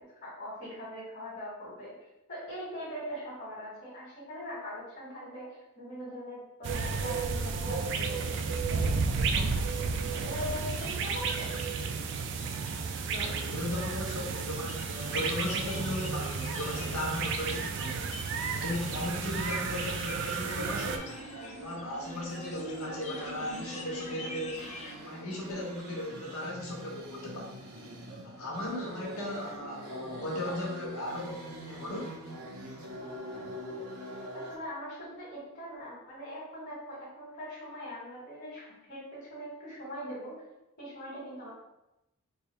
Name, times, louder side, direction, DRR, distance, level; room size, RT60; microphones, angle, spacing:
voice 1, 0.2-1.9 2.3-8.3 8.7-11.5 30.4-30.5 34.3-40.4 40.8-41.5, equal, 50° left, -8 dB, 1.4 m, -42 dB
sound 1, 6.6-21.0, right 5 dB, 55° right, 0.3 m, -32 dB
sound 2, 10.5-24.9, left 3 dB, 30° left, 0.4 m, -46 dB
voice 2, 13.0-18.1 18.5-21.3 21.6-24.6 25.0-27.5 28.2-32.1, left 1 dB, 70° left, -2 dB, 1.0 m, -36 dB
sound 3, 20.5-34.5, equal, 85° right, 0.8 m, -43 dB
3.4 x 2.0 x 4.2 m, 0.92 s
head